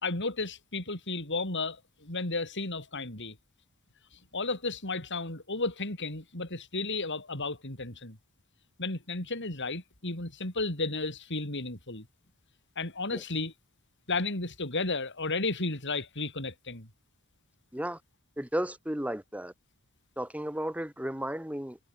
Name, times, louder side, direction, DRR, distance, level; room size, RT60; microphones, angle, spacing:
voice 1, 0.0-3.4 4.3-8.2 8.8-12.1 12.8-13.5 14.1-16.9, left 3 dB, 55° left, 5.5 m, -33 dB
voice 2, 18.4-19.5 20.2-21.8, right 1 dB, 5° right, 4.1 m, -34 dB
head